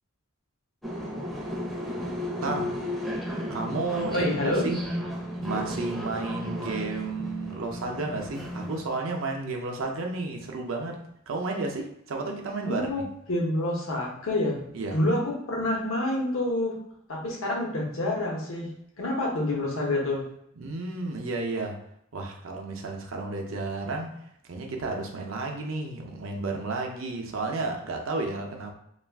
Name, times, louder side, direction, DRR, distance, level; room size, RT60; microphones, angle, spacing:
sound 1, 0.8-8.8, equal, ahead, 0.5 m, -34 dB
voice 1, 2.4-2.7 3.5-4.3 4.6-4.8 5.4-11.0 11.3-13.0 14.7-15.0 20.6-21.8 22.1-24.1 24.5-28.7, right 3 dB, 70° right, 2 dB, 0.6 m, -32 dB
voice 2, 4.1-4.7 12.6-13.0 13.3-14.6 14.9-16.8 17.1-18.7 19.0-20.2, left 1 dB, 75° left, -2 dB, 0.8 m, -27 dB
2.4 x 2.3 x 3.4 m, 0.73 s
head